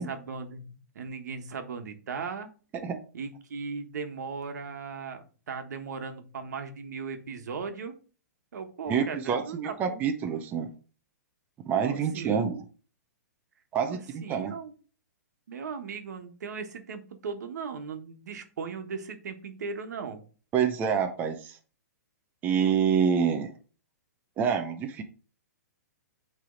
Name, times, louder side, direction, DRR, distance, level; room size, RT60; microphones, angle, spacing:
voice 1, 0.0-2.5 3.1-8.0 8.5-10.0 11.8-12.5 13.9-14.7 15.5-20.2, right 5 dB, 75° right, 7 dB, 1.3 m, -37 dB
voice 2, 8.9-10.7 11.7-12.6 13.7-14.6 20.5-21.6 22.4-23.5 24.4-25.0, right 7 dB, 20° right, 5 dB, 0.6 m, -27 dB
8.6 x 3.4 x 3.8 m, 0.38 s
hypercardioid pair, 150°, 9 cm